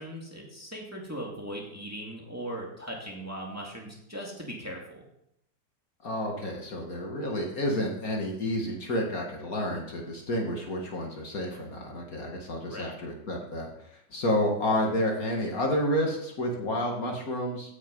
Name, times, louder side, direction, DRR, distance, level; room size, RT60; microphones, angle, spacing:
voice 1, 0.0-5.1 12.7-13.0, right 1 dB, 10° right, -1 dB, 2.1 m, -39 dB
voice 2, 6.0-17.8, left 1 dB, 50° left, 0 dB, 2.1 m, -30 dB
15.5 x 6.5 x 5.3 m, 0.78 s
omnidirectional pair, 2.0 m